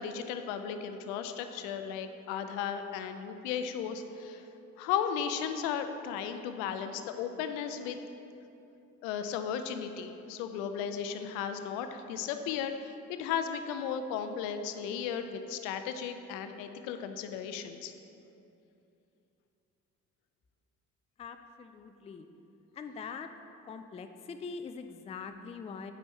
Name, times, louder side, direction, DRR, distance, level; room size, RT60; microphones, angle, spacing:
voice 1, 0.0-4.4 4.8-8.0 9.0-17.9, left 8 dB, 65° left, 8 dB, 0.6 m, -35 dB
voice 2, 21.2-22.3 22.7-23.3 23.7-25.9, left 5 dB, 15° left, 8 dB, 0.4 m, -43 dB
9.4 x 8.9 x 3.2 m, 2.8 s
figure-of-eight pair, 40°, 44 cm